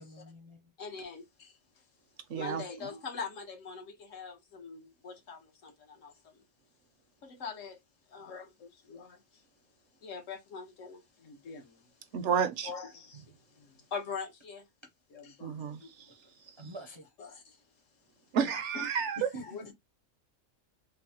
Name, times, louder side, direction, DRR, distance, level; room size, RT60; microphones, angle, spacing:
voice 1, 0.0-0.7 16.6-17.1 19.2-19.7, equal, 40° right, 0.4 m, -46 dB
voice 2, 0.8-1.5 2.3-6.3 7.2-7.8 8.1-9.2 10.0-11.8 12.6-13.2 13.6-14.7 15.1-15.9 17.3-17.6 18.7-19.1 19.5-19.7, left 5 dB, 75° left, 1.3 m, -43 dB
voice 3, 2.3-2.9 12.1-12.7 15.4-15.8 16.6-16.7 18.3-19.2, right 7 dB, 70° right, 0.8 m, -31 dB
3.8 x 2.1 x 2.8 m
omnidirectional pair, 1.3 m